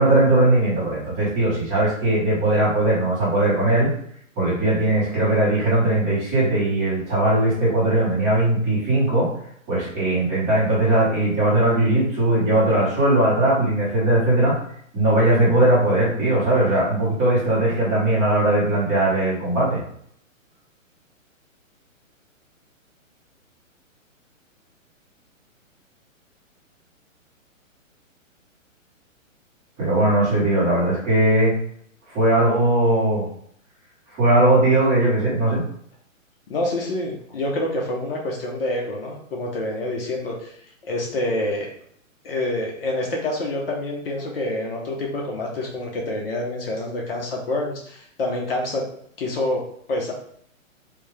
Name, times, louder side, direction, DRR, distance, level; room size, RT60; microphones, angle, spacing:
voice 1, 0.0-3.9 4.4-9.3 9.7-14.6 14.9-19.8 29.8-31.5 32.1-33.3 34.1-35.6, right 1 dB, 15° right, -8 dB, 1.4 m, -19 dB
voice 2, 36.5-40.5 40.8-41.7 42.2-48.8 49.2-49.6 49.9-50.1, left 1 dB, 45° left, -1 dB, 0.7 m, -27 dB
3.5 x 2.7 x 3.3 m, 0.65 s
hypercardioid pair, 165°, 40 cm